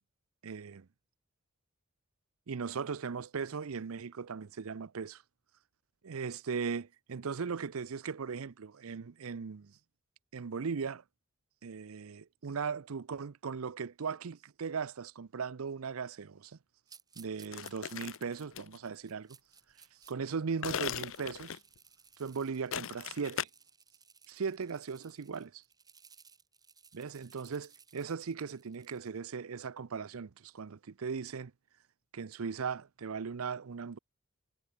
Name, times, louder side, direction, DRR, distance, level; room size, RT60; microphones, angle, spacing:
voice 1, 0.4-0.9 2.5-5.2 6.0-9.8 10.3-11.0 11.6-16.6 17.2-19.4 20.1-21.6 22.2-23.5 24.3-25.6 26.9-31.5 32.1-34.0, right 5 dB, 80° right, 0.6 m, -38 dB
sound 1, 16.9-20.1 20.5-29.2, right 6 dB, 20° right, 1.8 m, -60 dB
sound 2, 17.5-18.8 20.6-21.8 22.7-23.4, left 9 dB, 65° left, 0.6 m, -38 dB
head